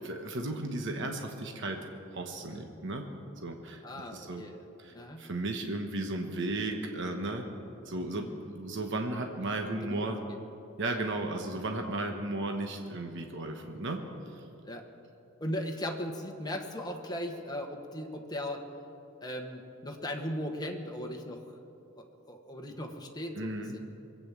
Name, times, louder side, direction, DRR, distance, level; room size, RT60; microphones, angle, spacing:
voice 1, 0.0-3.0 3.4-3.8 4.1-4.4 4.8-7.5 7.8-10.2 10.8-14.0 14.3-14.4 23.4-23.7, right 2 dB, 60° right, 3 dB, 1.2 m, -35 dB
voice 2, 3.8-4.6 4.9-5.3 6.7-6.8 7.1-7.3 8.1-8.4 9.8-10.4 14.6-14.9 15.4-18.7 19.2-21.4 22.0-23.8, left 1 dB, 20° left, 2 dB, 1.3 m, -38 dB
22.5 x 8.8 x 7.3 m, 2.9 s
head